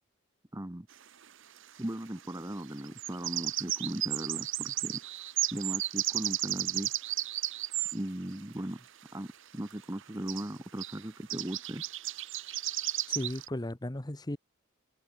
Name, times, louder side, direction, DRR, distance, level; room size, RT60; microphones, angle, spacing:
voice 1, 0.5-0.9 1.8-5.0 5.5-6.9 7.9-8.8 9.1-9.3 9.5-11.8, right 1 dB, 15° right, 1.0 m, -38 dB
sound 1, 0.9-1.0 2.8-8.0 9.7-9.8 10.0-10.1 10.3-10.5 10.8-11.0 11.3-13.5, right 14 dB, 60° right, 1.2 m, -33 dB
voice 2, 13.1-14.4, left 1 dB, 20° left, 1.0 m, -35 dB
head